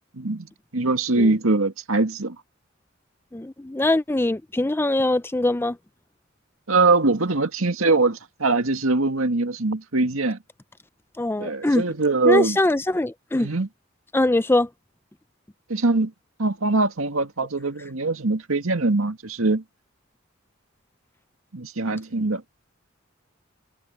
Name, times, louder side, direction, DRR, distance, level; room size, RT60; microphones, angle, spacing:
voice 1, 0.2-2.4 6.7-10.4 11.4-12.6 13.3-13.7 15.7-16.1 16.4-19.6 21.5-22.4, right 3 dB, 85° right, 2.0 m, -22 dB
voice 2, 3.3-5.8 11.2-11.8 12.2-13.5 14.1-14.7, left 1 dB, 10° left, 0.5 m, -22 dB
head